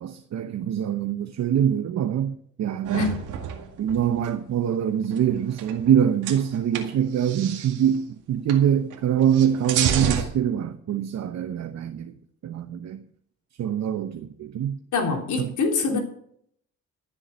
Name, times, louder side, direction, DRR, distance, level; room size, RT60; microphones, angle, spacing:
voice 1, 0.0-3.1 3.8-12.2 12.4-13.0 13.6-14.8 15.4-15.5 15.9-16.0, right 9 dB, 60° right, 0.9 m, -24 dB
sound 1, 2.9-4.4 5.1-6.0 6.2-7.9 8.5-8.6 8.9-10.2, right 8 dB, 85° right, 2.0 m, -30 dB
voice 2, 14.9-16.0, left 4 dB, 75° left, 3.4 m, -24 dB
13.0 x 7.2 x 8.0 m
cardioid pair, 90°, 30 cm